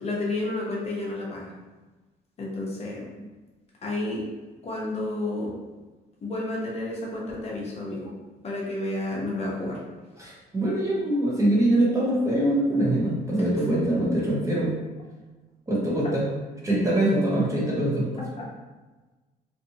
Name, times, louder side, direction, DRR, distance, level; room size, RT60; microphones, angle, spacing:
voice 1, 0.0-1.5 2.4-3.1 3.8-4.2 4.6-5.6 6.2-8.1 8.4-9.8 13.5-13.7, left 2 dB, 40° left, -3 dB, 0.7 m, -31 dB
voice 2, 10.2-14.7 15.7-16.3 16.6-18.1, right 1 dB, 20° right, -5 dB, 0.7 m, -23 dB
2.5 x 2.5 x 2.7 m, 1.2 s
cardioid pair, 110°, 17 cm